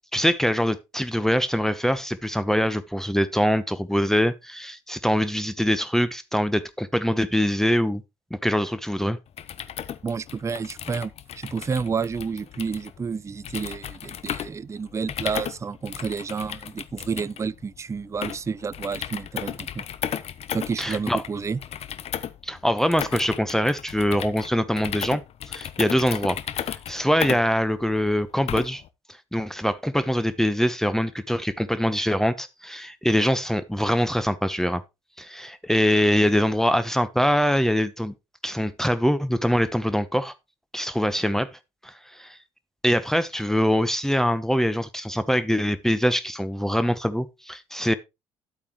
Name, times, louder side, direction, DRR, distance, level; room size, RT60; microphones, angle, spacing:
voice 1, 0.1-8.0 8.4-9.2 20.8-21.2 22.4-25.2 25.5-26.4 26.7-28.8 29.3-34.8 35.2-38.1 38.4-40.3 40.7-41.5 41.8-42.4 42.8-47.9, equal, 5° left, 0.9 m, -23 dB
sound 1, 9.3-28.9, left 9 dB, 45° left, 0.8 m, -35 dB
voice 2, 10.0-19.8 20.5-21.6, right 5 dB, 20° right, 0.5 m, -30 dB
11.5 x 8.6 x 3.0 m
figure-of-eight pair, 55°, 15 cm